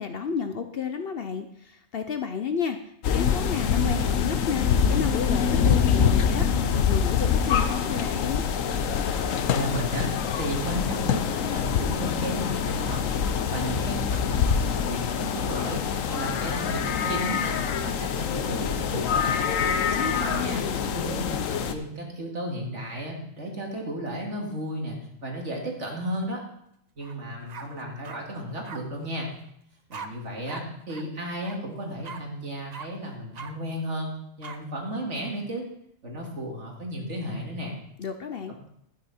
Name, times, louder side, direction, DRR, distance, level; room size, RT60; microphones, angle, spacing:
voice 1, 0.0-8.4 19.8-20.9 38.0-38.6, left 6 dB, 55° left, 8 dB, 0.8 m, -32 dB
sound 1, 3.0-21.7, left 7 dB, 80° left, 1.2 m, -25 dB
voice 2, 9.5-13.1 13.4-19.5 19.9-20.6 20.9-26.4 27.0-29.3 29.9-35.7 36.0-37.7, right 1 dB, 60° right, 0 dB, 2.6 m, -34 dB
sound 2, 27.0-27.2 27.5-28.2 28.6-28.8 29.9-30.1 30.5-30.6 30.9-31.0 31.4-31.6 32.0-32.2 32.7-32.9 33.3-33.5 34.4-34.6, right 5 dB, 40° right, 0.6 m, -40 dB
12.0 x 9.3 x 4.3 m, 0.72 s
omnidirectional pair, 1.4 m